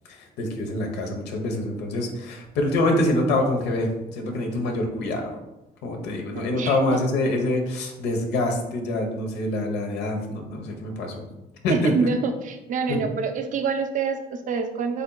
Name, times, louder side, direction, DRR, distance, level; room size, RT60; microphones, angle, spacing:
voice 1, 0.1-5.4 5.8-11.2 11.6-12.1 12.9-13.0, left 1 dB, 85° left, 3 dB, 1.0 m, -25 dB
voice 2, 6.3-6.8 11.7-15.0, right 5 dB, 50° right, 6 dB, 0.6 m, -26 dB
7.9 x 2.8 x 2.3 m, 0.96 s
cardioid pair, 110°, 17 cm